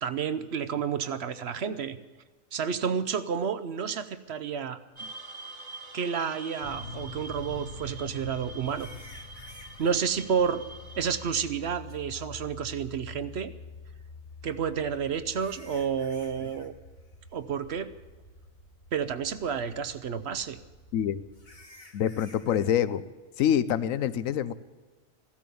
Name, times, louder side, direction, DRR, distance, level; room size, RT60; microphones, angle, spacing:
voice 1, 0.0-2.0 2.5-5.1 5.9-8.9 9.8-10.6 11.0-13.5 14.4-16.7 17.3-17.9 18.9-20.6, right 7 dB, 60° right, 12 dB, 0.9 m, -30 dB
sound 1, 5.0-11.3, right 2 dB, 20° right, 1.3 m, -45 dB
sound 2, 6.6-21.6, left 3 dB, 50° left, 1.7 m, -47 dB
sound 3, 6.8-6.9 8.6-10.1 11.9-12.0 14.5-16.7 17.0-17.3 17.7-17.8 18.4-18.5 21.3-22.8, left 2 dB, 30° left, 1.3 m, -54 dB
voice 2, 21.9-23.0 23.4-24.5, left 9 dB, 85° left, 15 dB, 1.1 m, -26 dB
15.5 x 13.0 x 7.0 m, 1.3 s
omnidirectional pair, 1.4 m